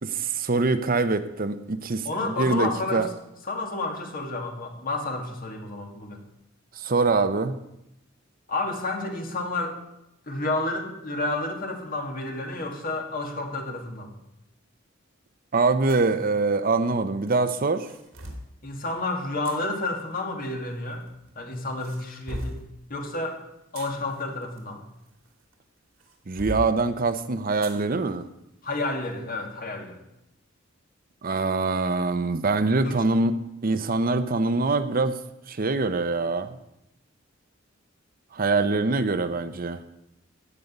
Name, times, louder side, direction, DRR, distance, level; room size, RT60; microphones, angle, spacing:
voice 1, 0.0-2.1 2.4-3.1 6.7-7.6 15.5-17.9 26.3-28.3 31.2-33.3 33.6-35.2 35.5-36.6 38.3-39.8, right 3 dB, 45° right, 11 dB, 0.7 m, -24 dB
voice 2, 2.0-3.1 3.5-6.2 8.5-9.8 10.3-14.1 18.6-21.1 21.4-22.6 22.9-23.4 23.7-24.8 28.6-30.0 32.8-33.0, left 2 dB, 45° left, 3 dB, 2.2 m, -30 dB
sound 1, 15.9-16.1 17.3-18.5 19.4-19.6 20.7-21.3 21.8-22.7 23.5-25.5 26.0-26.7 27.6-27.8 28.3-28.4 29.0-29.2, equal, 80° right, 2.8 m, -38 dB
15.0 x 5.3 x 9.7 m, 0.84 s
head